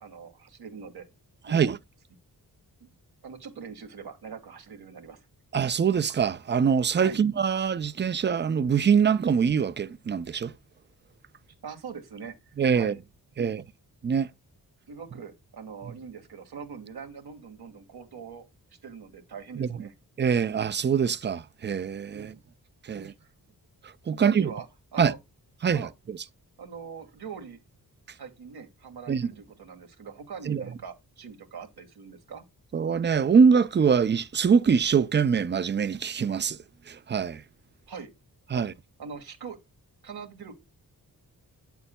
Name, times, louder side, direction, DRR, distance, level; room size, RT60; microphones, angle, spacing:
voice 1, 0.0-1.1 1.4-1.7 2.8-2.9 3.2-5.2 7.0-7.2 11.6-13.0 13.4-13.6 14.9-18.4 18.8-19.9 22.1-22.4 22.9-23.3 24.1-24.7 24.9-25.2 25.7-25.9 26.6-27.6 28.2-32.4 37.9-38.1 38.5-38.6 39.0-39.6 40.0-40.5, right 6 dB, 85° right, 1.6 m, -42 dB
voice 2, 5.5-10.5 12.6-12.9 13.4-13.6 14.0-14.3 19.6-19.7 20.2-22.3 22.9-23.1 24.1-24.5 25.0-25.1 25.6-26.2 29.1-29.3 30.5-30.6 32.7-36.6 36.9-37.4 38.5-38.7, right 6 dB, 30° right, 0.4 m, -24 dB
8.9 x 6.9 x 2.2 m
wide cardioid pair, 120°, 37 cm